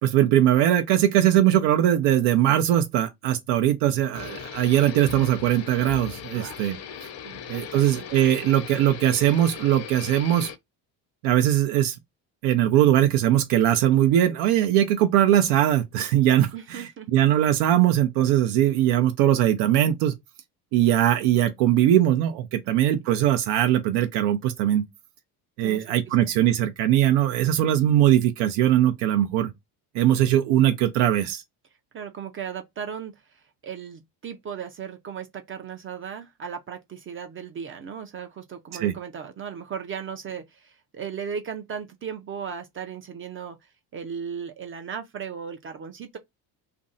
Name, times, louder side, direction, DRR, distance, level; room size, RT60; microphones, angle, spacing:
voice 1, 0.0-6.8 7.0-7.1 7.5-10.5 11.2-12.0 12.4-20.1 20.7-24.9 25.6-29.5 29.9-31.4 38.8-38.9, right 12 dB, 85° right, 0.6 m, -21 dB
sound 1, 4.1-10.6, left 8 dB, 40° left, 0.5 m, -38 dB
voice 2, 6.3-6.7 7.2-7.4 7.7-8.1 16.5-17.1 22.6-23.0 25.6-26.2 31.9-46.2, right 7 dB, 30° right, 0.4 m, -37 dB
2.6 x 2.0 x 3.7 m
cardioid pair, 115°, 41 cm